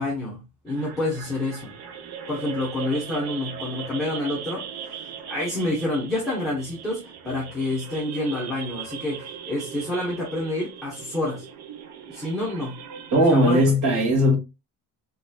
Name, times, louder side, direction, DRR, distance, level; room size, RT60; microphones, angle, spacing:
voice 1, 0.0-1.7 2.3-4.7 4.9-11.4 12.1-12.8 13.3-13.7, left 2 dB, ahead, 1.0 m, -28 dB
sound 1, 0.7-13.7, right 7 dB, 70° right, 0.8 m, -39 dB
voice 2, 13.1-14.4, equal, 50° right, 1.9 m, -18 dB
3.4 x 3.1 x 2.2 m
cardioid pair, 150°, 40 cm